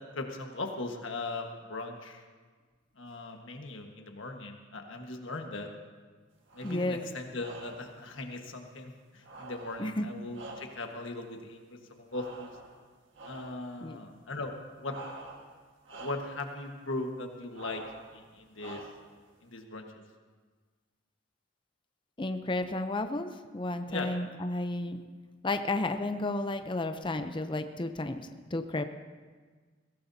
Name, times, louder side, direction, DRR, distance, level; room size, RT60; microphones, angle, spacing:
voice 1, 0.1-2.3 3.0-5.7 6.5-12.5 13.3-15.0 16.0-17.8 18.1-18.8 19.4-20.0 23.9-24.1, left 2 dB, 65° left, 3 dB, 1.5 m, -39 dB
sound 1, 6.5-7.0 7.4-8.0 9.2-11.0 12.1-12.8 13.1-13.7 14.8-15.6 15.8-16.4 17.5-18.1 18.6-19.2, right 2 dB, 65° right, 1.6 m, -47 dB
voice 2, 6.6-7.0 9.8-10.1 13.8-14.0 22.2-25.0 25.4-28.2 28.5-28.9, left 2 dB, 25° left, 8 dB, 0.6 m, -32 dB
22.0 x 16.5 x 2.8 m, 1.5 s
head